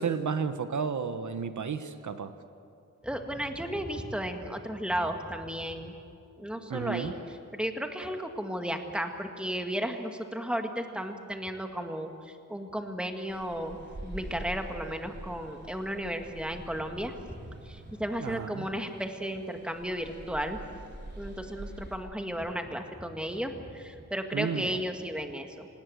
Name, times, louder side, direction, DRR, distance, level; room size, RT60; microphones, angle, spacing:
voice 1, 0.0-2.3 6.7-7.1 18.2-18.7 24.3-24.8, right 6 dB, 70° right, 10 dB, 1.1 m, -32 dB
voice 2, 3.0-5.9 6.4-7.1 7.5-20.6 21.1-25.7, equal, 5° right, 4 dB, 1.9 m, -34 dB
sound 1, 13.3-22.0, right 1 dB, 35° right, 4.0 m, -46 dB
27.0 x 19.0 x 7.9 m, 2.4 s
wide cardioid pair, 110°, 31 cm